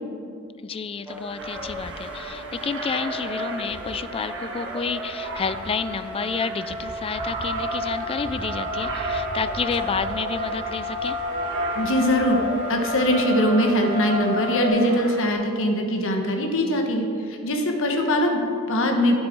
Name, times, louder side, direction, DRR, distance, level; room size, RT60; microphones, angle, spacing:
voice 1, 0.6-11.2, left 5 dB, 25° left, 14 dB, 0.3 m, -30 dB
sound 1, 1.1-15.3, equal, 5° right, 0.7 m, -36 dB
Aircraft, 1.4-15.3, right 2 dB, 60° right, 1.4 m, -39 dB
sound 2, 5.2-5.8 6.2-6.4 6.7-14.7, left 1 dB, 35° right, 1.8 m, -30 dB
voice 2, 11.7-12.4 12.7-19.2, equal, 60° left, 3 dB, 1.4 m, -22 dB
11.5 x 9.5 x 4.6 m, 2.4 s
head